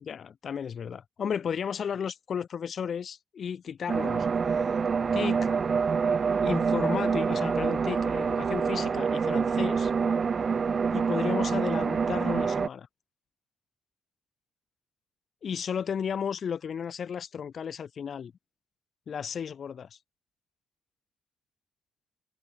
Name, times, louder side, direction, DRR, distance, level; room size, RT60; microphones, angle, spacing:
voice 1, 0.0-4.3 4.6-4.7 5.1-5.5 6.4-9.9 10.9-12.9 15.4-18.3 19.1-20.0, left 7 dB, 50° left, 3.3 m, -34 dB
sound 1, 3.9-12.7, right 5 dB, 40° right, 1.5 m, -26 dB
cardioid pair, 90°, 0 cm